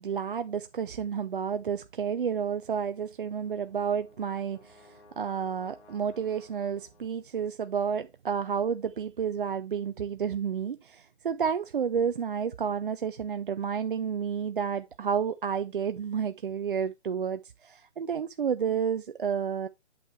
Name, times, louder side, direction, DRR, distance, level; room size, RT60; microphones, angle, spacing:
voice 1, 0.0-19.7, right 7 dB, 50° right, 0.4 m, -31 dB
Brass instrument, 3.1-7.4, left 3 dB, 90° left, 2.9 m, -58 dB
8.4 x 6.3 x 3.1 m
figure-of-eight pair, 150°, 34 cm